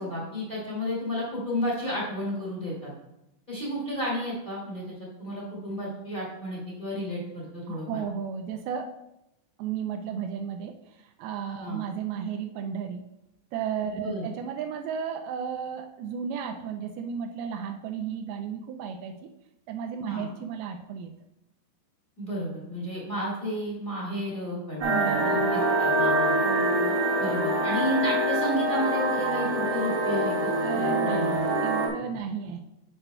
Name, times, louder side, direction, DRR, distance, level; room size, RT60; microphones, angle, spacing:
voice 1, 0.0-2.9 3.5-4.9 5.2-8.0 11.6-11.8 13.9-14.2 20.0-20.3 22.2-26.4 27.2-31.2, equal, 35° left, -5 dB, 0.7 m, -32 dB
voice 2, 7.7-9.0 9.6-10.8 11.2-13.1 13.5-19.1 19.7-21.1 24.8-25.6 26.4-27.0 30.6-32.6, right 7 dB, 90° right, 5 dB, 2.2 m, -33 dB
sound 1, 24.8-31.9, right 1 dB, 60° right, 1.2 m, -25 dB
9.8 x 8.3 x 2.2 m, 0.87 s
omnidirectional pair, 5.1 m